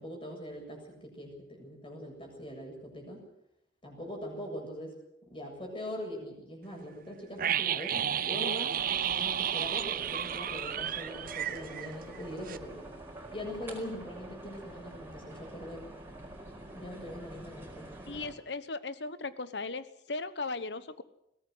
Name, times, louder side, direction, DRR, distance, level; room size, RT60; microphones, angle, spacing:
voice 1, 0.0-3.3 3.8-5.0 5.3-12.8 13.3-15.9 16.7-17.9, equal, 30° left, 2 dB, 7.6 m, -42 dB
sound 1, 7.4-12.2 12.5-12.6, right 9 dB, 55° right, 0.8 m, -32 dB
sound 2, 8.7-18.3, right 1 dB, 15° right, 4.9 m, -47 dB
voice 2, 18.1-21.0, left 3 dB, 70° left, 14 dB, 1.2 m, -37 dB
21.5 x 17.5 x 8.0 m, 0.82 s
head